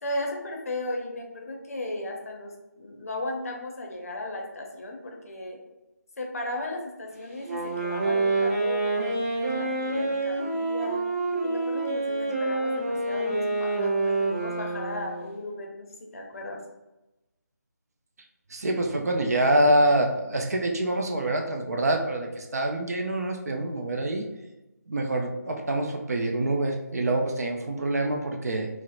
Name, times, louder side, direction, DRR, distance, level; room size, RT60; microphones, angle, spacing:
voice 1, 0.0-5.6 6.2-11.0 11.4-16.6, left 1 dB, 55° left, 1 dB, 0.5 m, -36 dB
Wind instrument woodwind instrument, 7.4-15.3, right 2 dB, 40° right, 1.0 m, -27 dB
voice 2, 18.5-24.3 24.9-28.7, right 1 dB, 60° right, 2 dB, 0.4 m, -25 dB
2.7 x 2.0 x 2.3 m, 1.0 s
figure-of-eight pair, 160°, 10 cm